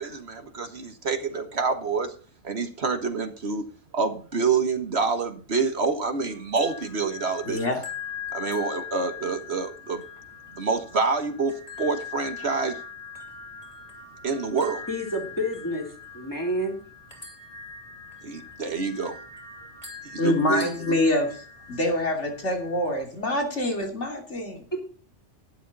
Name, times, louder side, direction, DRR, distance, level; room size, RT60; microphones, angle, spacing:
voice 1, 0.0-2.1 2.4-3.7 3.9-7.6 8.3-10.0 10.6-12.8 14.2-14.8 18.2-19.2 20.1-20.7, right 4 dB, 60° right, 7 dB, 1.7 m, -27 dB
sound 1, 6.2-23.0, left 6 dB, 30° left, 4.0 m, -42 dB
voice 2, 7.5-7.8 20.2-24.6, left 1 dB, 70° left, 2 dB, 3.2 m, -26 dB
voice 3, 14.9-16.8 24.7-24.8, equal, 15° left, 2 dB, 3.7 m, -29 dB
12.0 x 10.5 x 4.1 m, 0.40 s
omnidirectional pair, 1.2 m